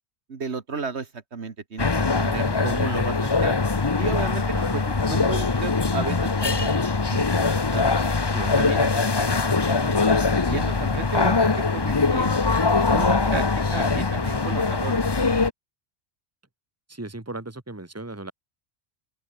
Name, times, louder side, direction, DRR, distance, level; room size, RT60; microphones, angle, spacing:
voice 1, 0.3-3.6 4.0-4.4 4.7-7.8 8.6-10.0 10.4-12.4 12.9-13.5 13.7-15.5, right 5 dB, 70° right, 2.0 m, -33 dB
sound 1, 1.8-15.5, left 4 dB, 25° left, 0.8 m, -22 dB
voice 2, 10.7-11.1 13.7-14.0 16.9-18.3, right 2 dB, 15° right, 1.8 m, -37 dB
open air
omnidirectional pair, 1.2 m